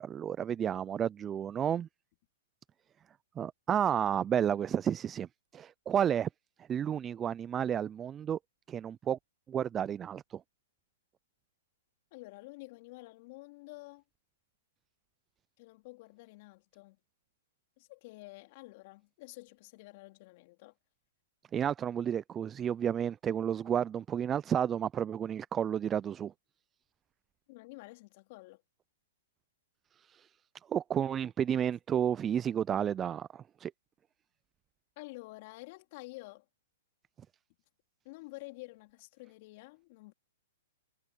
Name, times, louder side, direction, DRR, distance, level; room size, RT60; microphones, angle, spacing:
voice 1, 0.0-1.9 3.4-5.3 5.5-6.3 6.7-8.4 8.7-9.2 9.5-10.4 21.5-26.3 30.0-30.3 30.7-33.7, right 9 dB, 20° right, 0.5 m, -31 dB
voice 2, 12.1-14.0 15.6-17.0 17.8-20.7 27.5-28.6 35.0-36.5 38.0-40.1, left 23 dB, 45° left, 3.9 m, -49 dB
hypercardioid pair, 120°, 0 cm